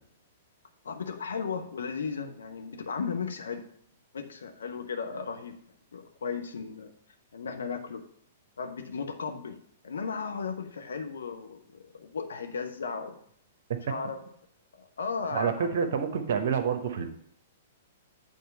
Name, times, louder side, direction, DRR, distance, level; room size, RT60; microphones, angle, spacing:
voice 1, 0.8-3.7 4.1-5.6 5.9-6.9 7.3-8.0 8.6-9.6 9.8-13.2 13.9-14.2 14.7-15.9, left 5 dB, 65° left, 5 dB, 0.9 m, -35 dB
voice 2, 15.3-17.1, right 7 dB, 55° right, 8 dB, 0.9 m, -28 dB
8.6 x 3.6 x 5.5 m, 0.67 s
figure-of-eight pair, 110°, 0 cm